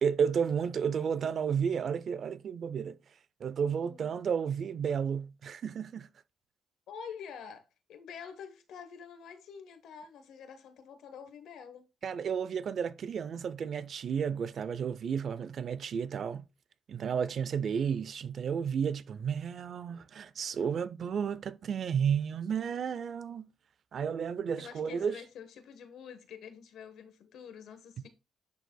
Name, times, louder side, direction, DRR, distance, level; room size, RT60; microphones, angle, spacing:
voice 1, 0.0-3.0 3.4-6.1 12.0-16.5 16.9-23.5 23.9-25.2, right 7 dB, 55° right, 0.5 m, -32 dB
voice 2, 6.9-11.9 22.7-22.8 24.6-28.1, left 7 dB, 75° left, 1.1 m, -47 dB
10.5 x 4.1 x 2.2 m
cardioid pair, 90°, 0 cm